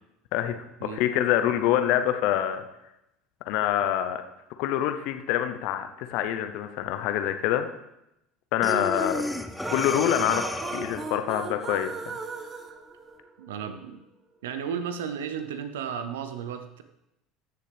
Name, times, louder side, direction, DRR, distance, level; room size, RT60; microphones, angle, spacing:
voice 1, 0.3-2.6 3.5-4.2 4.6-7.7 8.5-9.2 9.7-12.2, left 11 dB, 65° left, 8 dB, 0.7 m, -26 dB
Breathing, 8.6-11.2, left 1 dB, 5° left, 0.8 m, -32 dB
sound 1, 8.9-13.6, right 5 dB, 35° right, 1.1 m, -38 dB
voice 2, 13.4-14.0 14.4-16.8, right 7 dB, 80° right, 9 dB, 0.7 m, -34 dB
14.5 x 6.7 x 3.4 m, 0.88 s
hypercardioid pair, 75°, 0 cm